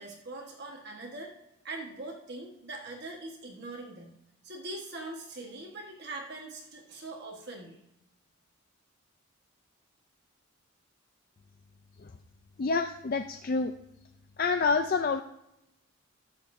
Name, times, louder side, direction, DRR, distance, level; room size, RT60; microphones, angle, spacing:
voice 1, 0.0-1.3 1.6-4.2 4.4-7.8, right 2 dB, 50° right, 0 dB, 1.3 m, -42 dB
voice 2, 12.6-13.7 14.4-15.2, left 4 dB, 40° left, 7 dB, 0.4 m, -27 dB
20.0 x 7.3 x 2.6 m, 0.85 s
head